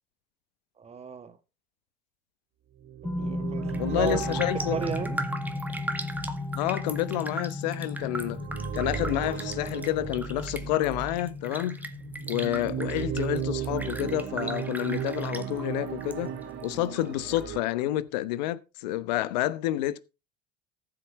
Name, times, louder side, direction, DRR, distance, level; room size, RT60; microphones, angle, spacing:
voice 1, 0.8-1.4 3.0-4.2 4.7-5.2, right 6 dB, 30° right, 1.6 m, -34 dB
sound 1, 2.8-11.3 11.9-17.6, right 9 dB, 55° right, 2.5 m, -36 dB
sound 2, 3.0-15.7, left 2 dB, 10° left, 0.8 m, -36 dB
Raindrop, 3.6-16.1 16.4-17.4 17.8-17.9, right 1 dB, 10° right, 1.8 m, -39 dB
voice 2, 3.8-4.8 6.5-8.4 8.7-11.9 12.3-16.3 16.6-20.0, left 14 dB, 80° left, 1.0 m, -29 dB
14.0 x 7.9 x 4.2 m
hypercardioid pair, 80°, 21 cm